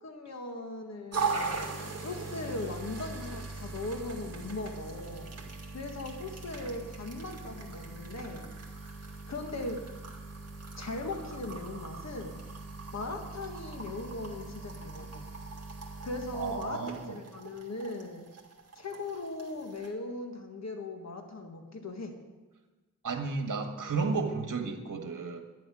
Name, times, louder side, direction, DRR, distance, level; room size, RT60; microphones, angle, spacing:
voice 1, 0.0-5.3 5.7-8.5 9.3-9.8 10.8-12.4 12.9-15.2 16.0-18.3 18.8-22.1, left 2 dB, 50° left, 3 dB, 1.8 m, -39 dB
sound 1, 1.1-19.9, right 4 dB, 45° right, 2.5 m, -40 dB
voice 2, 16.3-17.1 23.0-25.4, right 4 dB, 70° right, 4 dB, 1.8 m, -33 dB
11.5 x 7.9 x 9.8 m, 1.2 s
wide cardioid pair, 95°, 33 cm